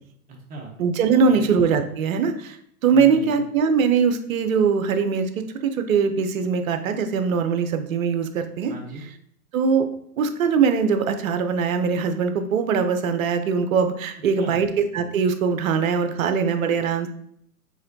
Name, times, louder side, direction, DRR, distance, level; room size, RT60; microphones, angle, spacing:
voice 1, 0.3-0.7 1.3-1.4 2.9-3.4 8.7-9.0 14.3-14.7, right 3 dB, 20° right, 0 dB, 0.8 m, -37 dB
voice 2, 0.8-2.6 2.8-8.7 9.5-9.9 10.2-17.1, right 6 dB, 60° right, 8 dB, 0.7 m, -21 dB
4.8 x 3.8 x 2.8 m, 0.69 s
hypercardioid pair, 120°, 46 cm